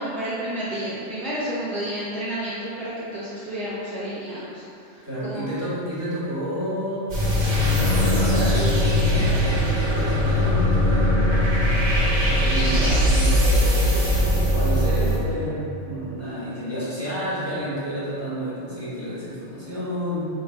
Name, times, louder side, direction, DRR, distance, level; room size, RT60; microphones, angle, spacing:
voice 1, 0.0-5.6 9.1-9.2 12.8-12.9, right 1 dB, ahead, -11 dB, 0.4 m, -31 dB
voice 2, 5.0-7.1 7.5-11.2 12.3-14.1 14.5-20.3, equal, 15° right, -11 dB, 1.1 m, -30 dB
sound 1, 7.1-15.2, left 1 dB, 85° right, 1.4 m, -20 dB
3.2 x 2.6 x 4.4 m, 2.6 s
omnidirectional pair, 1.2 m